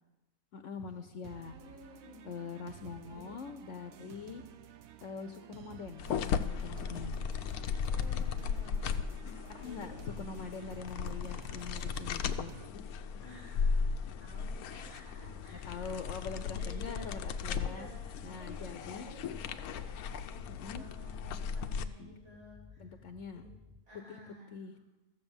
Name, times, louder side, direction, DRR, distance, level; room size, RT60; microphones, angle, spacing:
voice 1, 0.5-1.6 2.2-4.4 5.0-7.2 9.6-9.9 10.2-12.5 15.7-17.9 18.2-19.1 20.5-20.8 22.0-22.2 22.8-23.4 24.5-24.8, left 5 dB, 65° left, 7 dB, 1.0 m, -43 dB
sound 1, 1.2-12.7, right 9 dB, 70° right, 1.1 m, -53 dB
voice 2, 1.3-2.3 3.0-3.3 7.8-10.0 13.2-16.1 16.6-23.0 23.3-23.5 23.9-24.6, left 1 dB, 50° right, -5 dB, 5.5 m, -54 dB
sound 2, 6.0-21.8, left 6 dB, 85° left, 1.1 m, -36 dB
sound 3, 20.1-23.8, left 4 dB, 10° left, 0.3 m, -56 dB
14.5 x 7.3 x 7.1 m, 1.1 s
omnidirectional pair, 1.5 m